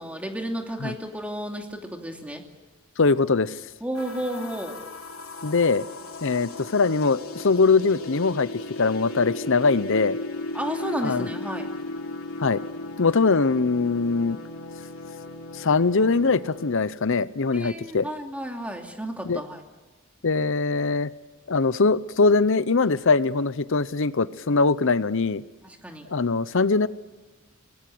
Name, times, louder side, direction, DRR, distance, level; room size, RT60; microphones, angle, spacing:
voice 1, 0.0-2.4 3.8-4.8 10.5-11.7 17.5-19.6 25.6-26.1, right 1 dB, 5° right, 3 dB, 2.7 m, -32 dB
voice 2, 3.0-3.6 5.4-5.8 6.2-8.5 8.8-10.2 11.0-11.3 12.4-12.6 13.0-14.4 15.5-18.1 19.2-19.4 20.2-21.1 21.5-25.4 26.1-26.9, left 4 dB, 65° left, 16 dB, 0.8 m, -22 dB
sound 1, 3.9-16.8, left 2 dB, 80° left, 2.8 m, -36 dB
26.0 x 20.0 x 7.9 m, 1.3 s
head